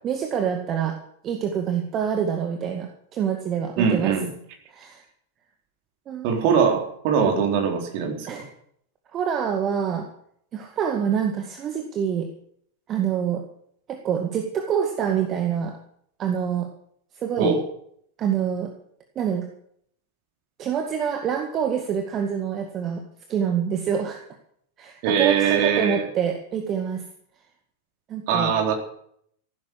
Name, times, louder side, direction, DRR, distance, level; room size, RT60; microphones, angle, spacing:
voice 1, 0.0-1.0 1.2-4.1 4.7-5.0 6.1-6.3 8.3-8.5 9.1-10.1 10.5-12.3 12.9-13.4 13.9-15.8 16.2-16.7 17.1-17.5 18.2-18.7 19.2-19.5 20.6-23.0 23.3-24.2 24.8-27.0 28.1-28.5, right 8 dB, 30° right, 4 dB, 1.9 m, -26 dB
voice 2, 3.8-4.3 6.2-8.4 17.4-17.6 25.0-26.0 28.3-28.7, right 6 dB, 45° right, 2 dB, 3.9 m, -22 dB
15.0 x 12.0 x 6.5 m, 0.67 s
figure-of-eight pair, 90°, 0 cm